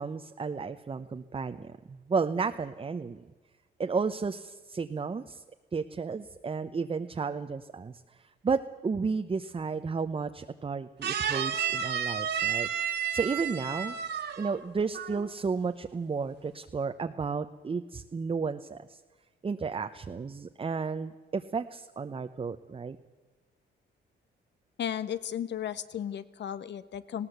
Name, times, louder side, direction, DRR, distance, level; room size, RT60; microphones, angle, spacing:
voice 1, 0.0-3.2 3.8-5.4 5.7-8.0 8.4-14.0 14.4-19.0 19.4-23.0, right 5 dB, 25° right, 7 dB, 0.9 m, -33 dB
sound 1, 11.0-14.6 14.9-15.3, right 8 dB, 60° right, 2.0 m, -31 dB
voice 2, 24.8-27.3, left 9 dB, 60° left, 14 dB, 1.2 m, -34 dB
19.0 x 17.0 x 8.1 m, 1.2 s
cardioid pair, 90°, 20 cm